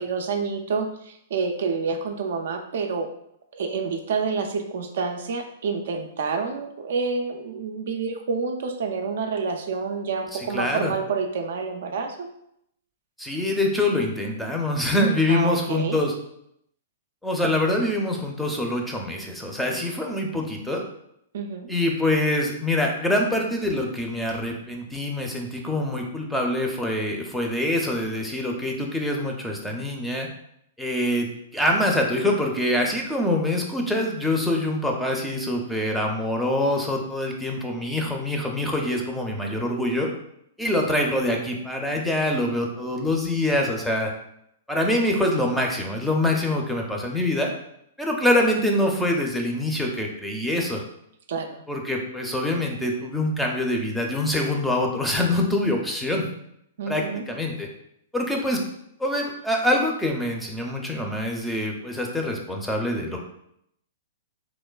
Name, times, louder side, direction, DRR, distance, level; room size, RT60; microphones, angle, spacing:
voice 1, 0.0-3.1 3.5-12.3 14.9-16.0 21.3-21.7 51.3-51.6 56.8-57.2, right 5 dB, 70° right, 5 dB, 0.3 m, -28 dB
voice 2, 10.3-10.9 13.2-16.1 17.2-20.8 21.7-30.3 30.8-40.1 40.6-44.1 44.7-47.5 48.0-50.8 51.7-56.2 56.9-57.7 58.1-58.6 59.0-63.2, left 1 dB, 5° left, 0 dB, 0.4 m, -25 dB
3.0 x 2.1 x 2.2 m, 0.75 s
hypercardioid pair, 120°, 0 cm